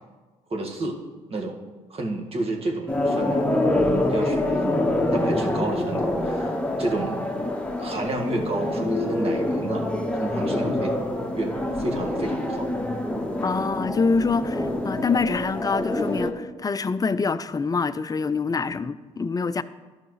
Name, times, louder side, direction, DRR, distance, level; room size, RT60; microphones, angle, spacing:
voice 1, 0.5-1.0 1.3-1.6 1.9-3.5 3.7-4.8 5.1-6.5 6.8-7.2 7.8-9.9 10.2-11.0 11.3-12.7, right 2 dB, 40° right, 1.8 m, -30 dB
sound 1, 2.9-16.3, left 1 dB, 5° left, 1.3 m, -26 dB
voice 2, 13.4-19.6, left 4 dB, 25° left, 0.5 m, -25 dB
13.5 x 5.7 x 3.2 m
hypercardioid pair, 50°, 15 cm